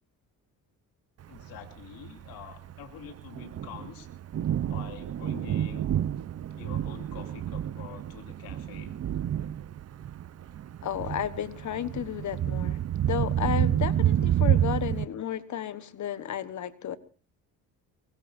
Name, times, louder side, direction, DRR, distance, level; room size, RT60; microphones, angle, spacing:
voice 1, 1.3-4.1 4.7-5.9 6.5-9.0, left 9 dB, 85° left, 2.8 m, -46 dB
Thunder, 1.4-15.0, right 11 dB, 45° right, 0.8 m, -29 dB
voice 2, 10.8-17.0, left 10 dB, 55° left, 1.4 m, -33 dB
23.5 x 22.0 x 2.7 m
cardioid pair, 95°, 35 cm